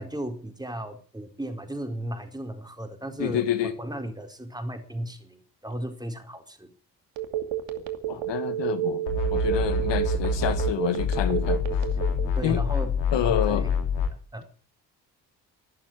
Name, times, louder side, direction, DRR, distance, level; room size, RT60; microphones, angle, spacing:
voice 1, 0.0-6.7 12.3-13.8 14.3-14.5, right 1 dB, 10° right, 4.5 m, -35 dB
voice 2, 3.2-3.7 7.8-9.0 9.3-11.6 12.4-12.6 13.1-13.7, left 10 dB, 60° left, 1.8 m, -28 dB
Telephone, 7.2-12.4, right 13 dB, 65° right, 2.6 m, -29 dB
sound 1, 9.1-10.7 11.0-14.1, left 4 dB, 85° left, 2.7 m, -26 dB
12.5 x 12.5 x 8.9 m
hypercardioid pair, 45°, 49 cm